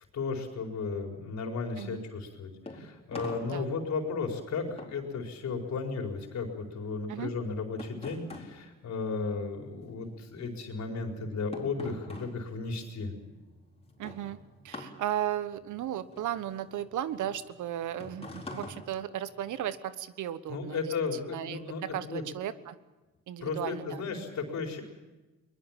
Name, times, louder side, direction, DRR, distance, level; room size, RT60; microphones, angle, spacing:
voice 1, 0.1-13.1 20.5-22.2 23.4-24.8, left 4 dB, 65° left, 2 dB, 4.6 m, -34 dB
sound 1, 2.2-9.8 10.1-19.8, left 2 dB, 20° left, 4.5 m, -46 dB
voice 2, 14.0-14.4 14.6-20.8 21.3-22.8 23.3-24.0, right 11 dB, 75° right, 14 dB, 1.2 m, -35 dB
23.0 x 20.5 x 7.4 m, 1.1 s
cardioid pair, 90°, 30 cm